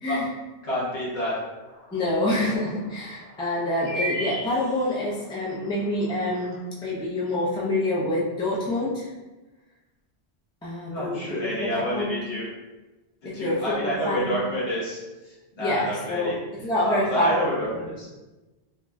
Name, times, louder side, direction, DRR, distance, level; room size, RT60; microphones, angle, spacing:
voice 1, 0.6-1.3 10.9-12.5 13.3-16.4 16.8-18.1, equal, 80° left, -7 dB, 1.4 m, -28 dB
sound 1, 1.7-1.8 2.1-2.2 3.5-5.1 5.6-5.7 6.1-6.5, right 1 dB, 20° right, 0.8 m, -32 dB
voice 2, 1.9-9.1 10.6-12.1 13.2-14.3 15.6-16.3 16.6-17.3 17.6-17.7, left 1 dB, 10° left, -5 dB, 0.3 m, -27 dB
3.6 x 2.6 x 2.2 m, 1.1 s
omnidirectional pair, 1.1 m